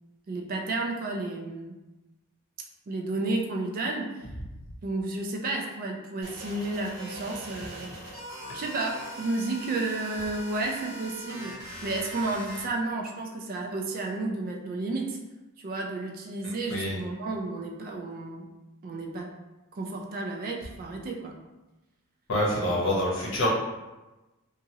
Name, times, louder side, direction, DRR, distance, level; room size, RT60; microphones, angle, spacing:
voice 1, 0.3-1.7 2.9-4.1 4.8-7.9 8.5-15.2 15.6-18.5 18.8-19.3 19.7-21.4, right 2 dB, 40° right, 1 dB, 0.3 m, -32 dB
sound 1, 6.2-12.7, right 1 dB, 85° right, 1.1 m, -41 dB
voice 2, 16.4-17.0 22.3-23.5, left 1 dB, 55° left, -3 dB, 0.8 m, -27 dB
2.8 x 2.4 x 2.7 m, 1.1 s
head